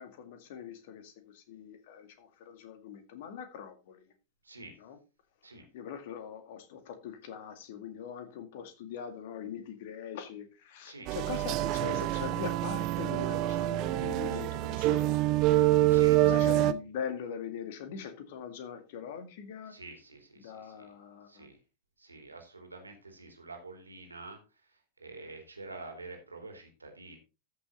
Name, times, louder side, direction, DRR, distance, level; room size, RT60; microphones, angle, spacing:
voice 1, 0.0-4.1 4.8-5.0 5.7-15.7 16.2-19.7 20.4-21.5, left 7 dB, 50° left, 2.2 m, -42 dB
voice 2, 4.4-4.7 5.4-5.7 10.8-11.1 15.9-16.2 19.7-20.9 21.3-21.6 22.0-27.2, right 3 dB, 80° right, 3.2 m, -48 dB
sound 1, 11.1-16.7, right 15 dB, 40° right, 0.6 m, -26 dB
14.0 x 6.2 x 4.0 m
figure-of-eight pair, 90°, 0 cm